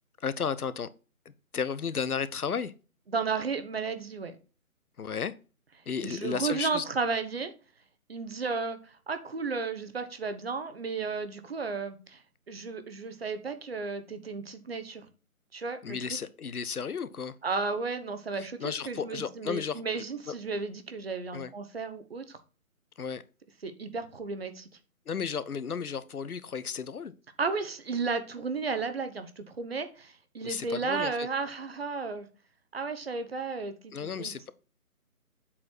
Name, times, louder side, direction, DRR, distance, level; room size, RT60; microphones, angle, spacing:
voice 1, 0.2-0.9 1.2-2.7 5.0-5.4 5.9-6.8 15.8-17.4 18.4-19.8 20.3-20.4 21.3-21.5 23.0-23.2 25.1-27.1 30.4-31.3 33.9-34.5, left 6 dB, 85° left, 0.9 m, -33 dB
voice 2, 3.1-4.4 6.0-7.5 8.1-15.1 15.5-16.0 17.4-22.4 23.6-24.7 27.4-32.3 32.7-34.3, right 4 dB, 45° right, 1.1 m, -33 dB
7.6 x 4.3 x 4.3 m
figure-of-eight pair, 165°, 43 cm